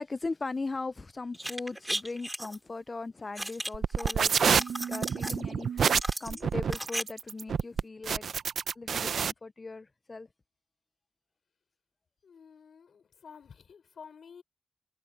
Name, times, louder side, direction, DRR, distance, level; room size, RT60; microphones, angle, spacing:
voice 1, 0.0-5.9 6.2-8.3 8.8-10.3, left 3 dB, 35° left, 0.4 m, -38 dB
sound 1, 1.3-2.6 3.4-4.1 4.4-5.4 5.8-7.0 7.3-7.4, right 1 dB, 10° right, 2.2 m, -35 dB
sound 2, 3.7-9.3, right 7 dB, 85° right, 0.5 m, -27 dB
voice 2, 12.2-14.4, left 6 dB, 80° left, 5.3 m, -51 dB
wide cardioid pair, 120°, 0 cm